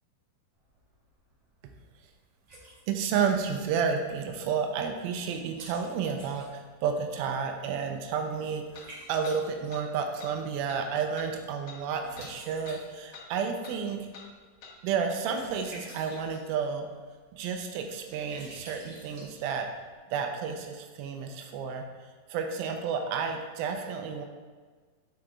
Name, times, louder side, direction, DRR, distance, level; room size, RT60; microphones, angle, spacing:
Liquid, 0.5-20.0, right 1 dB, 45° right, 2.1 m, -53 dB
voice 1, 2.9-14.1 14.8-16.9 17.3-19.7 20.1-24.3, right 6 dB, 85° right, 4 dB, 2.2 m, -31 dB
sound 1, 7.2-7.3 8.7-8.9 9.2-9.4 9.7-9.8 10.2-10.3 10.7-10.8 11.2-11.3 11.7-11.8 12.1-12.3 12.6-12.8 13.1-13.3 13.6-13.8 14.1-14.3 14.6-14.7, left 5 dB, 80° left, 1.5 m, -47 dB
8.8 x 3.9 x 3.5 m, 1.4 s
omnidirectional pair, 4.8 m